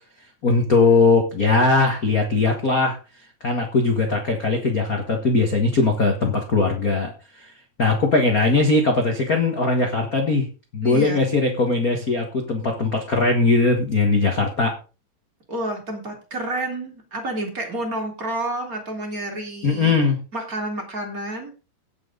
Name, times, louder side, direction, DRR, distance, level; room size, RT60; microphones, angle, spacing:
voice 1, 0.4-3.0 3.4-7.5 7.8-10.5 10.7-14.7 19.6-20.2, left 3 dB, 80° left, 2 dB, 0.8 m, -20 dB
voice 2, 10.8-11.3 15.5-19.9 20.3-21.5, right 1 dB, 25° right, 2 dB, 2.5 m, -29 dB
17.5 x 6.2 x 3.9 m, 0.33 s
omnidirectional pair, 4.3 m